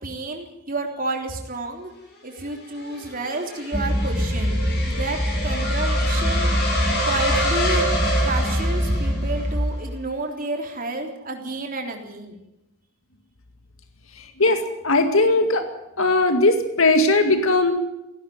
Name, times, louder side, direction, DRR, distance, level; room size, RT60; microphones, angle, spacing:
voice 1, 0.0-1.9 2.2-4.6 4.9-6.5 7.0-7.9 8.2-12.4, right 2 dB, 40° right, 2 dB, 3.6 m, -30 dB
sound 1, 2.4-9.5, equal, 50° left, 6.8 m, -28 dB
sound 2, 3.7-9.6, equal, 10° right, 1.5 m, -24 dB
voice 2, 14.2-15.7 16.0-17.7, left 2 dB, 70° left, 7 dB, 2.1 m, -19 dB
17.0 x 17.0 x 9.5 m, 0.87 s
head